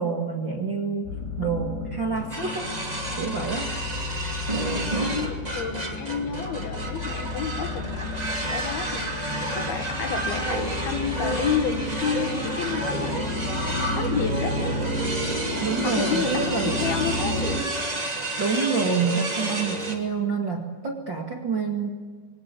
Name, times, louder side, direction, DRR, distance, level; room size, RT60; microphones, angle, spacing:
voice 1, 0.0-2.7 3.2-3.7 15.6-16.8 18.4-21.9, right 5 dB, 40° right, 1 dB, 1.8 m, -27 dB
sound 1, 1.1-17.6, left 2 dB, 85° left, 6.7 m, -32 dB
sound 2, 2.1-4.4 5.7-8.3, left 4 dB, 50° left, 3.1 m, -47 dB
sound 3, 2.3-19.9, right 2 dB, 15° right, 1.9 m, -30 dB
voice 2, 5.0-13.6 13.9-14.6 15.8-17.6, left 7 dB, 65° left, 7 dB, 3.3 m, -31 dB
24.0 x 19.0 x 8.4 m, 1.5 s
omnidirectional pair, 5.1 m